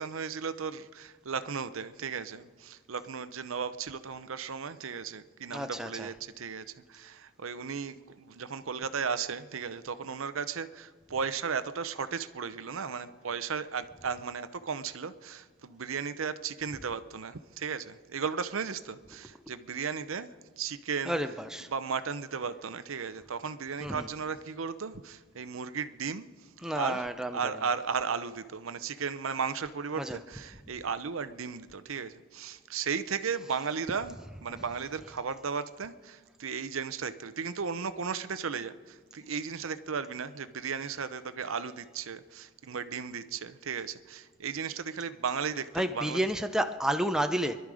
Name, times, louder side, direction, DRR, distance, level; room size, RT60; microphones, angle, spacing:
voice 1, 0.0-20.3 20.6-21.2 21.6-26.3 26.7-27.1 27.3-46.2, right 6 dB, 75° right, 12 dB, 0.7 m, -35 dB
voice 2, 5.5-6.1 21.1-21.7 23.8-24.1 26.6-27.4 30.0-30.2 45.8-47.6, right 1 dB, 5° right, 7 dB, 0.5 m, -30 dB
25.0 x 11.5 x 4.9 m, 1.4 s
head